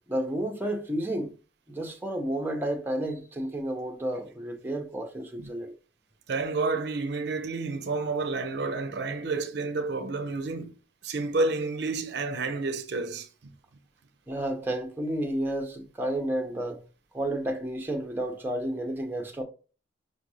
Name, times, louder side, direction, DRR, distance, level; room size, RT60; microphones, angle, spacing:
voice 1, 0.1-1.4 1.7-5.7 14.3-16.8 17.1-19.4, right 1 dB, 10° right, 0.6 m, -31 dB
voice 2, 6.3-10.7 11.0-13.5, right 3 dB, 60° right, 0.5 m, -30 dB
5.3 x 2.5 x 3.0 m
head